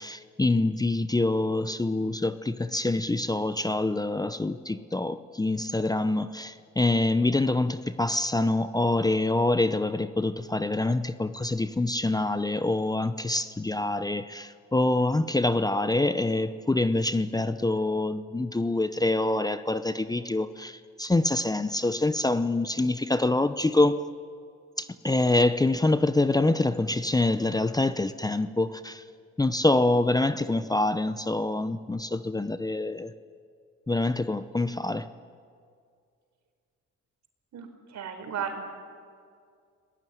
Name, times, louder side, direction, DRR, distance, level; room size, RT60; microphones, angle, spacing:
voice 1, 0.0-24.0 24.8-29.0 29.4-33.1 33.9-35.1, left 2 dB, 10° left, 12 dB, 0.8 m, -26 dB
voice 2, 37.5-38.6, right 7 dB, 65° right, 6 dB, 4.4 m, -35 dB
30.0 x 18.5 x 9.4 m, 2.2 s
cardioid pair, 90°, 30 cm